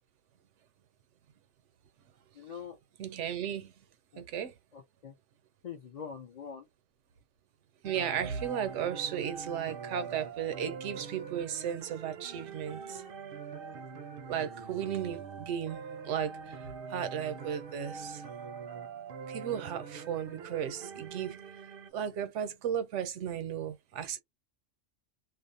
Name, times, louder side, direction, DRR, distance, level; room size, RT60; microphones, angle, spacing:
voice 1, 2.3-2.8 4.1-4.2 4.7-5.1 5.6-6.7, left 7 dB, 55° left, 0.4 m, -44 dB
voice 2, 3.0-3.7 4.2-4.5 7.8-13.0 14.3-18.2 19.3-21.4 21.9-24.2, right 9 dB, 85° right, 0.9 m, -35 dB
sound 1, 7.8-21.9, right 5 dB, 60° right, 0.6 m, -44 dB
2.4 x 2.0 x 2.6 m
omnidirectional pair, 1.2 m